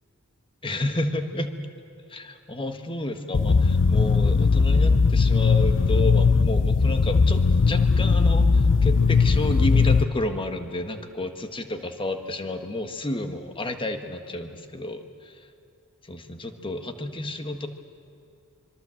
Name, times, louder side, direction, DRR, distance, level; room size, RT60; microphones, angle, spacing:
voice 1, 0.6-1.5 2.1-15.5 16.0-17.7, left 1 dB, 25° left, 7 dB, 1.4 m, -31 dB
sound 1, 3.3-10.0, left 4 dB, 55° left, 0.6 m, -19 dB
25.0 x 23.5 x 7.8 m, 2.6 s
head